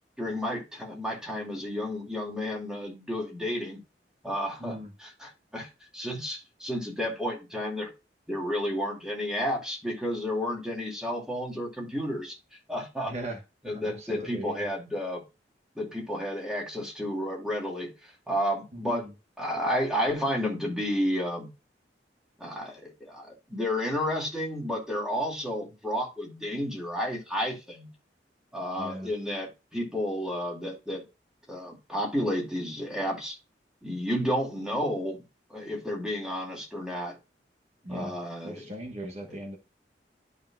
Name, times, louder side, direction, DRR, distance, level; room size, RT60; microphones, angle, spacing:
voice 1, 0.2-3.8 4.2-7.9 8.3-12.4 12.7-13.1 13.6-15.2 15.8-19.1 19.4-21.5 22.4-27.9 28.5-31.0 31.5-33.4 33.8-35.2 35.5-37.2 37.9-38.7, equal, 5° right, 2.3 m, -31 dB
voice 2, 4.6-4.9 13.1-14.6 18.7-19.1 28.8-29.1 37.8-38.1 38.4-39.6, right 1 dB, 40° right, 1.4 m, -38 dB
12.0 x 5.6 x 2.4 m
head